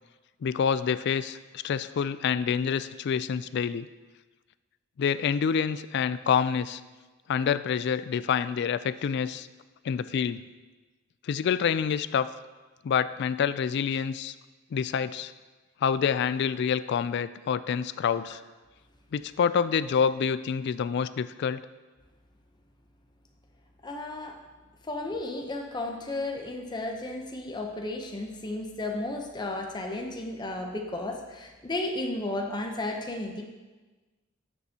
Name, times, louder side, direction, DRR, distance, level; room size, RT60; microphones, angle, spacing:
voice 1, 0.4-3.9 5.0-6.8 7.3-9.5 9.8-10.4 11.2-12.3 12.8-14.3 14.7-15.3 15.8-18.4 19.1-21.6, left 7 dB, 55° left, 14 dB, 0.3 m, -27 dB
voice 2, 23.8-24.4 24.9-33.4, left 2 dB, 20° left, 2 dB, 0.7 m, -33 dB
13.0 x 6.9 x 2.8 m, 1.2 s
head